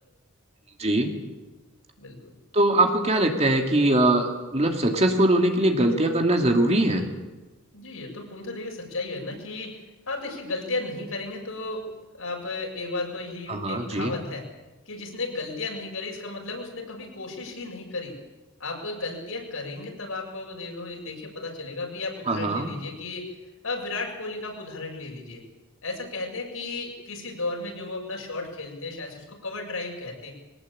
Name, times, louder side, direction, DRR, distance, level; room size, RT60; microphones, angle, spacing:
voice 1, 0.8-1.1 2.5-7.0 13.5-14.2 22.3-22.7, right 1 dB, 30° right, 4 dB, 2.6 m, -22 dB
voice 2, 2.0-2.4 7.7-9.8 10.1-14.5 14.9-18.2 18.6-23.4 23.6-25.4 25.8-30.3, left 3 dB, 70° left, 0 dB, 7.3 m, -34 dB
23.5 x 18.5 x 8.7 m, 1.1 s
head